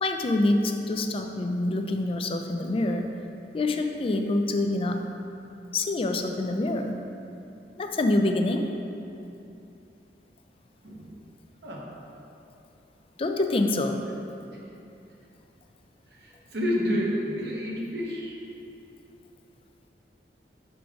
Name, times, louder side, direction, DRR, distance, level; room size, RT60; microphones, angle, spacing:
voice 1, 0.0-3.1 3.5-5.0 5.7-7.0 7.8-8.7 13.2-14.1, left 2 dB, 30° left, 5 dB, 0.3 m, -26 dB
voice 2, 10.8-11.1 11.6-11.9 14.5-14.6 16.1-18.4, equal, 65° right, -2 dB, 0.9 m, -30 dB
4.8 x 3.9 x 5.7 m, 2.8 s
head